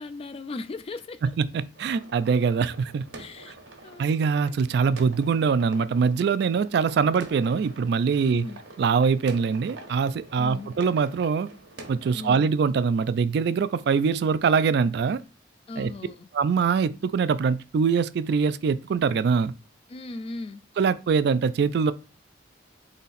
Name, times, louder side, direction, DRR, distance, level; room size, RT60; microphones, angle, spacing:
voice 1, 0.0-1.2 3.2-3.6 3.8-4.1 4.4-4.6 8.2-8.6 10.4-10.8 12.1-12.5 15.7-16.3 19.9-20.6, left 3 dB, 30° left, 0.3 m, -38 dB
sound 1, 1.7-12.5, right 2 dB, 80° right, 1.1 m, -46 dB
voice 2, 1.8-3.1 4.0-8.5 8.8-11.5 11.9-15.2 15.8-15.9 16.3-19.5 20.8-21.9, right 5 dB, 60° right, 0.3 m, -23 dB
4.0 x 2.9 x 4.0 m
head